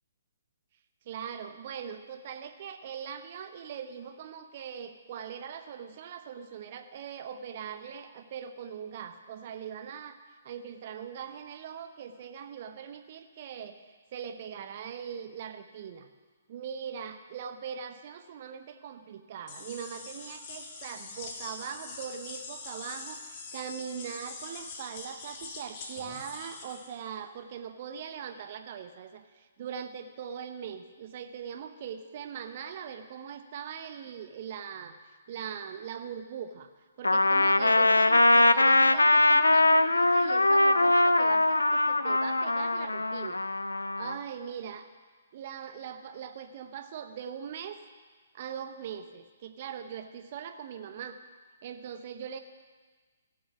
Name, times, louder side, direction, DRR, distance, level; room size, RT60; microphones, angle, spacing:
voice 1, 1.1-10.2 10.4-13.8 14.1-16.1 16.5-36.7 37.0-43.4 43.8-44.9 45.3-47.8 48.3-51.2 51.6-52.4, right 8 dB, 45° right, 8 dB, 0.8 m, -41 dB
sound 1, 19.5-26.9, left 4 dB, 35° left, 1.4 m, -43 dB
Trumpet, 37.0-44.2, left 2 dB, 80° left, 0.4 m, -22 dB
16.0 x 6.2 x 6.2 m, 1.4 s
figure-of-eight pair, 125°, 0 cm